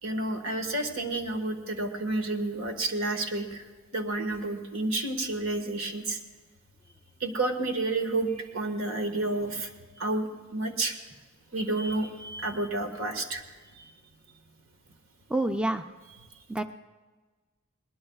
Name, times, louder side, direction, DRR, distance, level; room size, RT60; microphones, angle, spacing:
voice 1, 0.0-3.6 3.9-6.2 7.2-9.7 10.0-11.0 11.5-13.4 13.8-13.9, right 2 dB, 75° right, 5 dB, 1.7 m, -30 dB
voice 2, 15.3-15.8 16.5-16.6, right 1 dB, 5° right, 7 dB, 0.4 m, -27 dB
21.5 x 20.0 x 2.4 m, 1.4 s
head